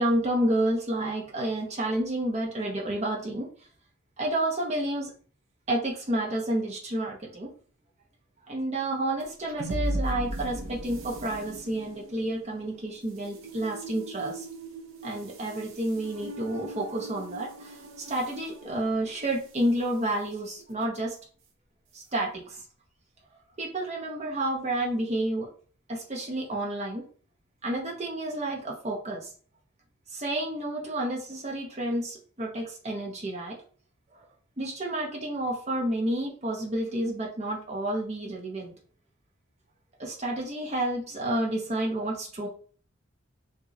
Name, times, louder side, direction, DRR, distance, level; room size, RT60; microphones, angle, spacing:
voice 1, 0.0-3.5 4.2-5.1 5.7-7.5 8.5-14.5 15.0-17.8 18.1-21.1 21.9-22.6 23.6-25.5 25.9-27.0 27.6-29.3 30.1-33.6 34.6-38.7 40.0-42.5, right 1 dB, 35° right, -1 dB, 0.9 m, -30 dB
sound 1, 9.2-19.7, right 1 dB, 85° right, 0.8 m, -38 dB
6.0 x 2.7 x 2.7 m, 0.42 s
head